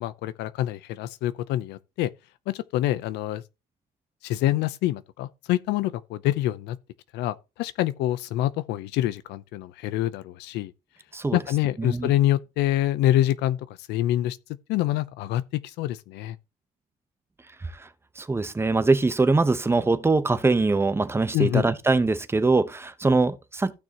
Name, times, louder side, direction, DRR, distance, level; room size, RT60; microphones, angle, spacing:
voice 1, 0.0-2.1 2.5-3.4 4.2-6.8 7.1-10.7 11.3-13.6 13.9-14.4 14.7-16.4 21.3-21.6, left 14 dB, 85° left, 0.7 m, -26 dB
voice 2, 11.8-12.1 17.8-17.9 18.2-23.7, right 3 dB, 15° right, 0.9 m, -23 dB
15.0 x 6.3 x 3.0 m
cardioid pair, 110°, 17 cm